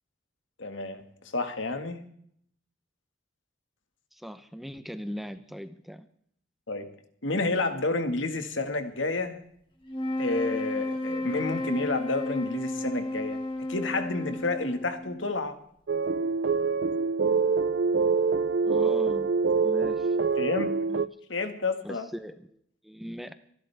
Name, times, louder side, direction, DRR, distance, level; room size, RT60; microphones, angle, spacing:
voice 1, 0.6-1.1 1.3-2.0 6.7-6.9 7.2-9.4 10.2-13.4 13.7-15.6 20.4-20.8 21.3-22.1, left 3 dB, 80° left, 7 dB, 1.8 m, -30 dB
voice 2, 4.1-6.1 18.6-19.3 19.6-20.2 20.9-21.2 21.8-23.3, equal, ahead, 10 dB, 0.8 m, -40 dB
sound 1, 9.9-15.3, left 1 dB, 25° left, 2.4 m, -33 dB
sound 2, 15.9-21.1, right 4 dB, 60° right, 0.5 m, -25 dB
26.5 x 11.5 x 3.5 m, 0.67 s
head